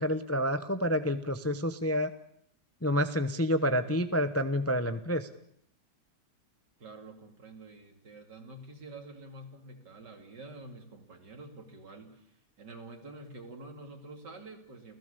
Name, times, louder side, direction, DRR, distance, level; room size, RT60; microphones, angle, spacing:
voice 1, 0.0-2.1 2.8-5.3, equal, 15° left, 10 dB, 0.5 m, -28 dB
voice 2, 6.8-12.3 12.6-15.0, right 2 dB, 75° right, 5 dB, 3.5 m, -48 dB
28.5 x 16.0 x 6.9 m, 0.69 s
omnidirectional pair, 1.9 m